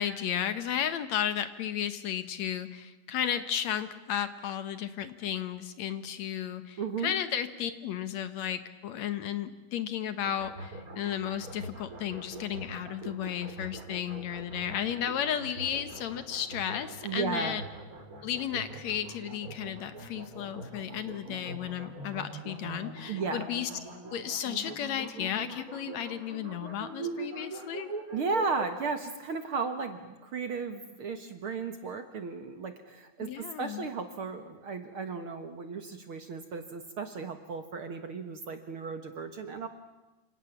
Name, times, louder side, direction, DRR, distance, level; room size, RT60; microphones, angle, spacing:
voice 1, 0.0-17.6 18.2-23.7 24.1-27.9 33.2-33.9, left 9 dB, 65° left, 11 dB, 2.1 m, -34 dB
voice 2, 6.8-7.1 17.0-17.6 23.1-23.5 28.1-39.7, right 4 dB, 55° right, 7 dB, 1.8 m, -35 dB
sound 1, 10.2-28.8, right 2 dB, 25° right, 4.0 m, -42 dB
28.0 x 26.0 x 7.2 m, 1.1 s
omnidirectional pair, 3.7 m